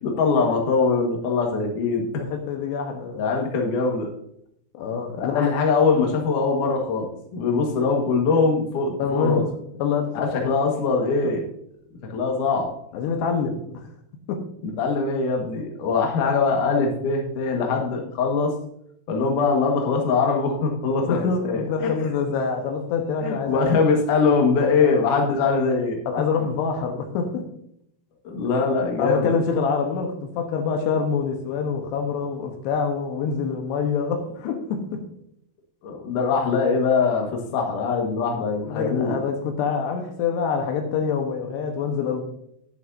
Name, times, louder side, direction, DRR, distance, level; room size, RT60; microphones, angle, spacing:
voice 1, 0.0-2.1 3.1-4.1 5.2-7.1 7.3-9.4 10.1-11.5 12.1-12.7 14.6-18.5 19.1-21.2 21.4-21.9 23.2-26.0 28.2-29.3 35.8-39.2, left 4 dB, 60° left, 2.7 m, -22 dB
voice 2, 2.1-3.2 4.7-5.5 9.0-9.5 9.8-10.5 12.9-13.8 14.3-14.5 21.1-23.7 24.8-25.0 26.1-27.5 29.0-35.0 38.6-42.2, left 5 dB, 80° left, 3.2 m, -26 dB
11.0 x 11.0 x 2.7 m
omnidirectional pair, 4.9 m